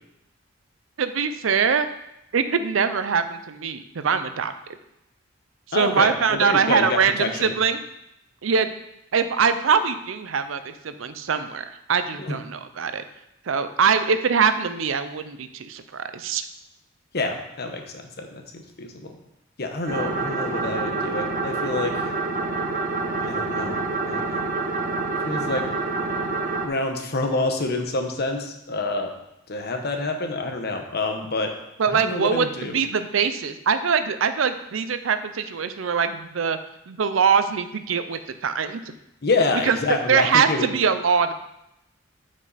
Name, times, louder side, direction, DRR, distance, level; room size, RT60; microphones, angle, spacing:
voice 1, 1.0-1.9 2.3-4.5 5.7-7.8 8.4-8.7 9.1-13.0 13.5-16.4 31.8-36.6 36.9-38.8 39.6-39.8 40.1-41.3, right 6 dB, 80° right, 10 dB, 0.6 m, -23 dB
voice 2, 5.7-7.5 12.2-12.4 17.1-19.1 19.6-21.9 23.2-23.8 24.1-24.2 25.2-25.7 26.6-29.1 29.5-31.5 31.9-32.8 39.2-40.7, left 2 dB, 55° left, 4 dB, 1.1 m, -27 dB
sound 1, 19.9-26.7, right 3 dB, 40° right, 0.9 m, -27 dB
8.6 x 5.3 x 4.1 m, 0.85 s
head